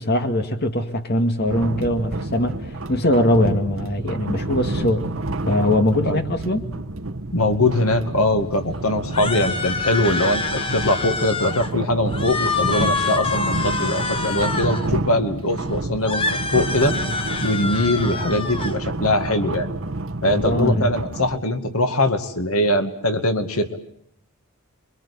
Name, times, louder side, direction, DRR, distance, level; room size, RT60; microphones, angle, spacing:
voice 1, 0.0-2.5 2.9-5.1 5.5-6.7 20.2-20.9, left 1 dB, 50° left, 6 dB, 2.2 m, -21 dB
sound 1, 1.5-21.4, right 2 dB, 65° right, 1.4 m, -29 dB
voice 2, 7.3-17.0 17.4-19.7 20.2-23.8, left 1 dB, 75° left, 7 dB, 2.3 m, -22 dB
sound 2, 9.1-11.7 12.1-14.9 16.0-18.7, left 3 dB, 25° left, 1.5 m, -26 dB
28.0 x 24.0 x 8.6 m, 0.70 s
head